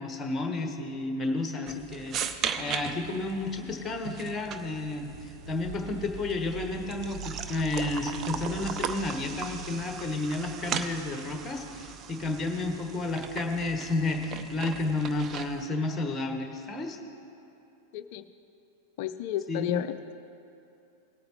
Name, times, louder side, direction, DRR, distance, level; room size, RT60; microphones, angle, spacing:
voice 1, 0.0-17.0 19.5-19.6, left 2 dB, 15° left, 4 dB, 1.2 m, -31 dB
sound 1, 1.7-15.7, right 7 dB, 30° right, 0.5 m, -38 dB
sound 2, 4.1-11.3, right 4 dB, 85° right, 2.5 m, -45 dB
voice 2, 17.9-18.2 19.0-20.1, left 10 dB, 50° left, 11 dB, 0.4 m, -32 dB
18.5 x 8.7 x 3.1 m, 2.8 s
figure-of-eight pair, 90°, 0 cm